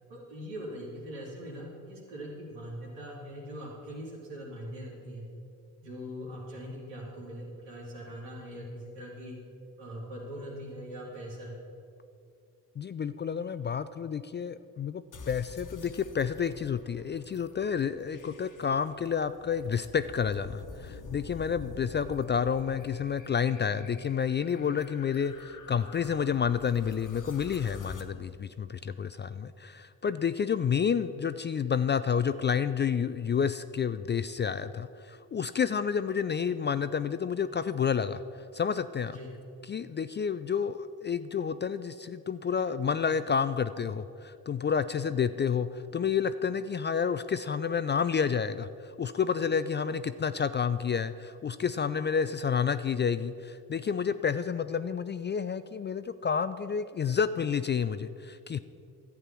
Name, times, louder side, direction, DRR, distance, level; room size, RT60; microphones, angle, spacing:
voice 1, 0.1-5.2 5.8-9.4 9.8-11.6 39.1-39.3, equal, 80° right, -4 dB, 2.9 m, -41 dB
voice 2, 12.8-38.2 38.5-39.2 39.6-58.6, left 7 dB, 25° left, 13 dB, 0.4 m, -30 dB
sound 1, 15.1-28.0, left 4 dB, 45° left, 1.3 m, -48 dB
11.5 x 8.2 x 6.0 m, 2.5 s
hypercardioid pair, 45°, 44 cm